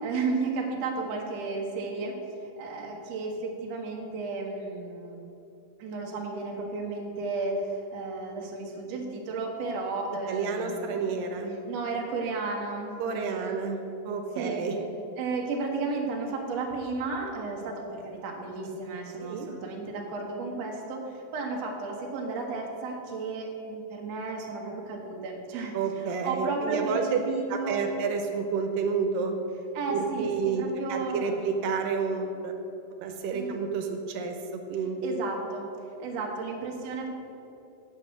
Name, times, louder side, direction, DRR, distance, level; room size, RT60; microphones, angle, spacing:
voice 1, 0.0-2.1 2.6-5.2 5.8-11.0 11.7-13.6 14.4-14.6 15.2-27.9 29.7-31.4 33.3-33.5 35.0-35.7 36.0-37.1, right 3 dB, 60° right, 0 dB, 2.2 m, -33 dB
voice 2, 10.3-11.6 13.0-14.8 19.2-19.5 25.7-27.2 27.5-29.3 29.9-30.6 30.9-32.5 33.0-35.2, right 5 dB, 85° right, 4 dB, 2.5 m, -30 dB
8.6 x 7.5 x 6.4 m, 2.9 s
omnidirectional pair, 3.9 m